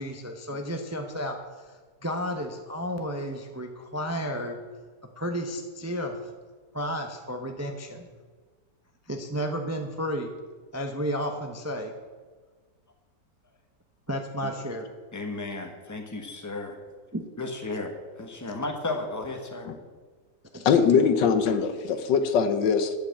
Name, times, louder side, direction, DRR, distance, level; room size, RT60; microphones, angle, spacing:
voice 1, 0.0-1.4 2.0-4.6 5.2-6.2 6.7-8.1 9.1-10.3 10.7-11.9 14.1-14.9 17.1-17.2 20.5-20.7, equal, 15° right, 4 dB, 0.5 m, -32 dB
voice 2, 15.1-16.8 17.4-19.7, left 2 dB, 10° left, 4 dB, 1.1 m, -34 dB
voice 3, 20.6-22.9, left 6 dB, 85° left, 9 dB, 1.6 m, -22 dB
11.5 x 5.9 x 8.5 m, 1.5 s
omnidirectional pair, 1.9 m